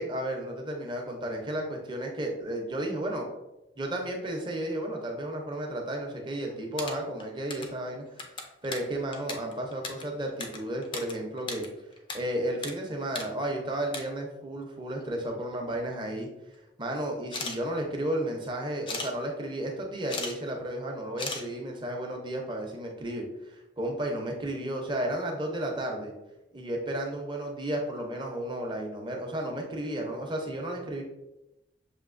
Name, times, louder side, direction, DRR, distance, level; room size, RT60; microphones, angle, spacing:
voice 1, 0.0-3.3 3.8-8.2 8.6-11.7 12.1-16.3 16.8-26.1 26.5-31.0, right 1 dB, 25° right, 1 dB, 0.7 m, -33 dB
sound 1, 6.5-7.8 8.1-11.1 11.4-12.2 12.4-12.7 13.1-13.3 13.7-14.0 15.0-15.1 15.5-16.1 17.2-17.6 18.9-19.1 19.9-20.4 20.6-20.7 21.2-21.4, left 3 dB, 25° left, 0.4 m, -36 dB
6.5 x 2.7 x 2.5 m, 0.93 s
head